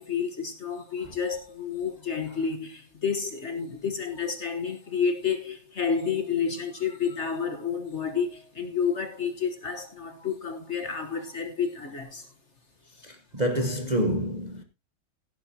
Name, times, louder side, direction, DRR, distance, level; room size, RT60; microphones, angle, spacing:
voice 1, 0.0-12.3, left 6 dB, 40° left, 1.4 m, -30 dB
voice 2, 13.0-14.6, equal, 25° right, 1.1 m, -28 dB
16.0 x 11.0 x 2.8 m
omnidirectional pair, 2.0 m